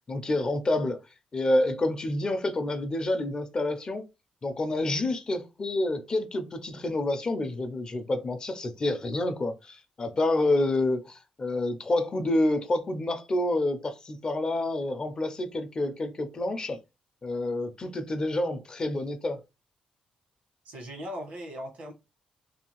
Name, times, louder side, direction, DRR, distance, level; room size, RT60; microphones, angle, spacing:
voice 1, 0.1-1.0 1.3-4.0 4.4-16.8 17.2-19.4, left 2 dB, 35° left, 0.5 m, -28 dB
voice 2, 20.6-21.9, equal, 80° right, 1.2 m, -38 dB
2.7 x 2.4 x 3.0 m
cardioid pair, 100°, 2 cm